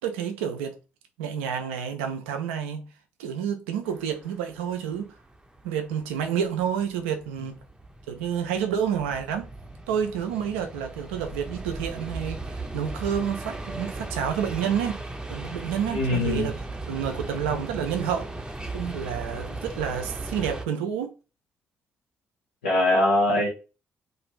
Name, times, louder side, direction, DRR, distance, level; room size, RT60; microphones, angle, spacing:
voice 1, 0.0-0.8 1.2-2.9 3.2-5.1 5.6-7.6 8.1-9.5 9.9-15.0 15.3-16.6 16.9-18.3 18.7-21.1, right 8 dB, 85° right, 0.4 m, -29 dB
sound 1, 3.9-20.6, right 2 dB, 10° right, 0.6 m, -37 dB
voice 2, 15.9-16.5 22.6-23.5, left 1 dB, 90° left, 0.8 m, -22 dB
2.4 x 2.4 x 3.0 m
hypercardioid pair, 40°, 6 cm